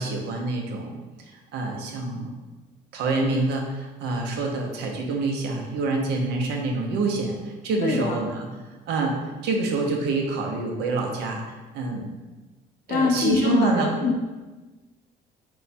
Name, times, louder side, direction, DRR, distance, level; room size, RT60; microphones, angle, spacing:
voice 1, 0.0-2.3 2.9-8.5 8.9-9.2 9.4-11.4 11.7-12.1 12.9-13.9, right 3 dB, 85° right, 1 dB, 0.8 m, -26 dB
voice 2, 7.8-8.2 12.9-14.2, left 4 dB, 60° left, 1 dB, 0.7 m, -23 dB
4.7 x 2.3 x 4.0 m, 1.2 s
cardioid pair, 110°, 17 cm